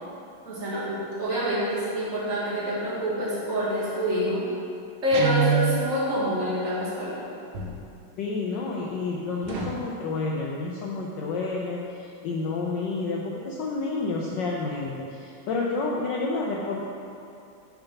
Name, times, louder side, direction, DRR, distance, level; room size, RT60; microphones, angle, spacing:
voice 1, 0.4-4.5 5.0-7.2, equal, 40° right, -9 dB, 1.6 m, -27 dB
Guitar, 5.1-5.9, right 6 dB, 70° right, 1.2 m, -23 dB
sound 1, 7.5-7.8 9.4-9.9, equal, 90° right, 1.8 m, -34 dB
voice 2, 8.2-16.8, left 3 dB, 75° left, -3 dB, 1.1 m, -30 dB
5.7 x 3.9 x 5.7 m, 2.6 s
omnidirectional pair, 2.4 m